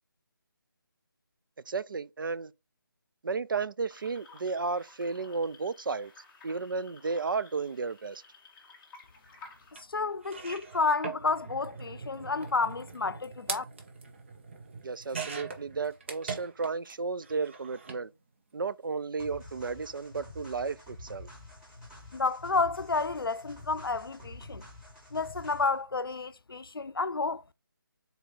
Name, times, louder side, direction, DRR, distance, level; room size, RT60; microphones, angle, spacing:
voice 1, 1.7-2.5 3.2-6.1 6.4-8.2 14.8-18.1 18.5-21.3, right 4 dB, 65° right, 0.4 m, -33 dB
sound 1, 3.9-9.8, left 3 dB, 10° left, 0.8 m, -54 dB
voice 2, 9.7-13.6 22.1-24.6 25.1-27.4, left 4 dB, 85° left, 0.4 m, -30 dB
sound 2, 9.8-9.9 10.2-16.9 17.2-18.0 19.0-19.2 19.5-19.6, right 5 dB, 35° right, 0.7 m, -42 dB
sound 3, 19.2-25.8, left 1 dB, 5° right, 1.2 m, -48 dB
4.0 x 2.8 x 3.9 m
figure-of-eight pair, 155°, 12 cm